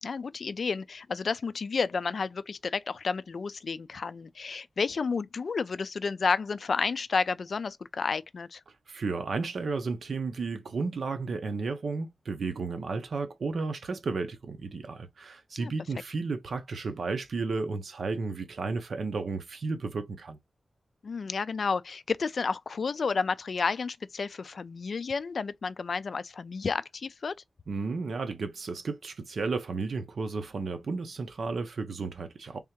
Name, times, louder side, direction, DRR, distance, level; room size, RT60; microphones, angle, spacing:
voice 1, 0.0-8.6 15.6-15.7 21.0-27.3, left 5 dB, 60° left, 0.3 m, -31 dB
voice 2, 8.9-20.4 27.7-32.6, right 4 dB, 70° right, 0.8 m, -33 dB
3.6 x 3.3 x 2.9 m
wide cardioid pair, 140°, 0 cm